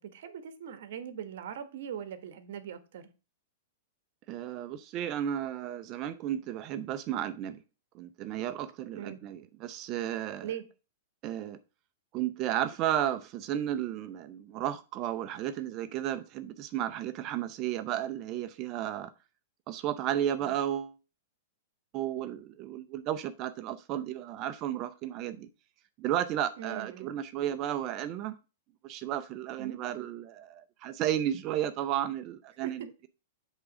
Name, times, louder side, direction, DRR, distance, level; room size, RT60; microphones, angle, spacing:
voice 1, 0.0-3.1 8.9-9.2 10.4-10.6 20.4-20.5 26.6-27.1 29.6-29.8 32.6-32.9, right 9 dB, 65° right, 1.2 m, -41 dB
voice 2, 4.3-7.6 7.9-10.5 11.2-11.6 12.1-19.1 19.7-21.0 21.9-25.5 26.0-28.3 28.8-33.1, right 11 dB, 35° right, 0.6 m, -33 dB
8.1 x 3.7 x 6.2 m
hypercardioid pair, 135°, 0 cm